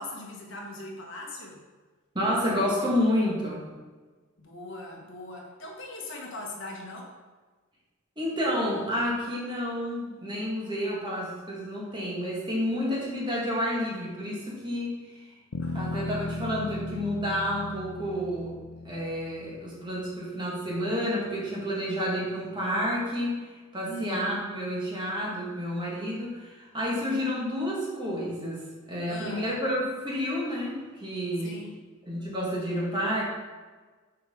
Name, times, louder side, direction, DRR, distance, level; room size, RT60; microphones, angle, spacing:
voice 1, 0.0-1.6 4.4-7.1 15.6-16.2 23.8-24.2 29.1-29.5 31.4-31.9, left 1 dB, 60° left, -1 dB, 1.3 m, -40 dB
voice 2, 2.1-3.6 8.2-15.3 15.7-18.5 18.8-23.5 23.7-28.6 28.9-31.5 32.1-33.2, equal, 20° right, -4 dB, 1.5 m, -30 dB
Bass guitar, 15.5-19.9, left 3 dB, 85° left, 0.5 m, -37 dB
6.6 x 4.6 x 3.6 m, 1.4 s
head